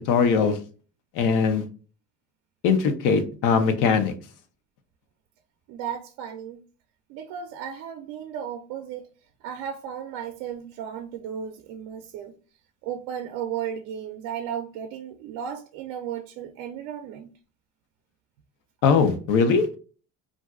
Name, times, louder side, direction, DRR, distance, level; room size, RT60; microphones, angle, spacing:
voice 1, 0.1-0.6 1.2-1.7 2.6-4.1 18.8-19.7, left 5 dB, 75° left, 0.7 m, -20 dB
voice 2, 5.7-6.6 7.1-9.1 9.4-12.3 12.8-17.3, right 8 dB, 80° right, 0.5 m, -35 dB
2.6 x 2.3 x 3.5 m
cardioid pair, 120°, 31 cm